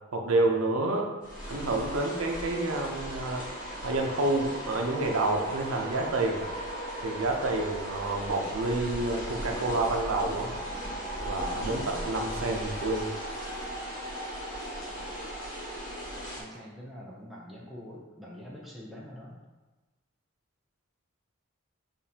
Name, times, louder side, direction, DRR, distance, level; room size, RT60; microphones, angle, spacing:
voice 1, 0.1-1.1 1.5-3.4 3.8-6.5 7.0-10.5 11.2-13.1, right 2 dB, 85° right, 1 dB, 0.7 m, -28 dB
sound 1, 1.2-16.4, equal, 40° left, 1.2 m, -37 dB
voice 2, 16.4-19.4, equal, ahead, -5 dB, 0.5 m, -45 dB
6.7 x 2.6 x 2.8 m, 1.2 s
head